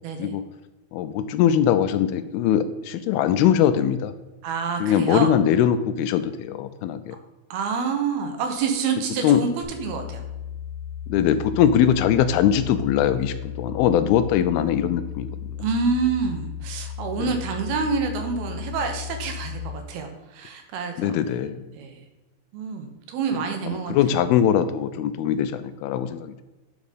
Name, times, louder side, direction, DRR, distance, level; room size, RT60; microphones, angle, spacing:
voice 1, 0.9-4.1 4.8-7.2 9.2-9.4 11.1-15.6 17.2-17.4 21.0-21.7 23.3-26.4, left 9 dB, 85° left, 12 dB, 2.4 m, -21 dB
voice 2, 4.4-5.3 7.5-10.2 15.6-21.4 21.7-22.0 22.5-24.0, right 5 dB, 80° right, 4 dB, 3.0 m, -27 dB
sound 1, 9.6-19.6, left 9 dB, 30° right, 2.8 m, -35 dB
11.0 x 5.3 x 5.1 m, 1.1 s
omnidirectional pair, 4.5 m